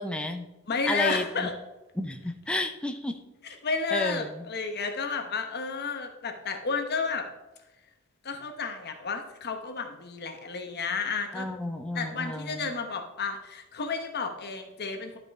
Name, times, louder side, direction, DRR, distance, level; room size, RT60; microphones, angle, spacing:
voice 1, 0.0-0.5 0.9-1.5 2.0-3.2 3.9-4.4 11.3-12.6, left 1 dB, 5° left, 5 dB, 0.5 m, -32 dB
voice 2, 0.7-1.5 3.6-7.3 8.2-11.5 11.9-15.2, left 4 dB, 50° left, 5 dB, 1.1 m, -32 dB
12.0 x 5.2 x 3.6 m, 1.0 s
head